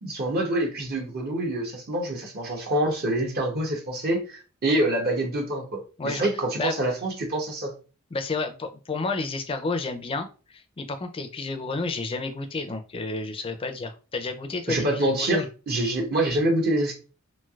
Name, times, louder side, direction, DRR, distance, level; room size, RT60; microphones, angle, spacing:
voice 1, 0.0-7.7 14.7-16.9, right 1 dB, 50° right, 1 dB, 0.7 m, -26 dB
voice 2, 8.1-10.3 10.8-15.5, left 3 dB, 25° left, 7 dB, 0.4 m, -30 dB
3.1 x 2.7 x 2.3 m, 0.33 s
head